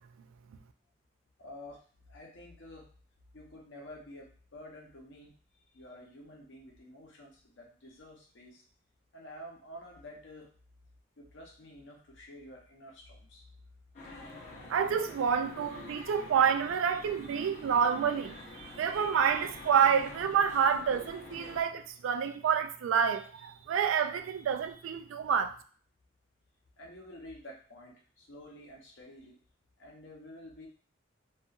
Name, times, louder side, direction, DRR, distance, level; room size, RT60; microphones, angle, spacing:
voice 1, 1.4-2.9 3.3-5.3 5.7-8.6 9.1-10.5 11.2-13.4 26.8-29.4 29.8-30.7, left 1 dB, 70° left, 0.7 m, -50 dB
sound 1, 13.9-21.6, left 3 dB, 40° left, 0.6 m, -47 dB
voice 2, 14.7-25.6, right 7 dB, 85° right, 0.3 m, -28 dB
2.8 x 2.4 x 2.4 m
head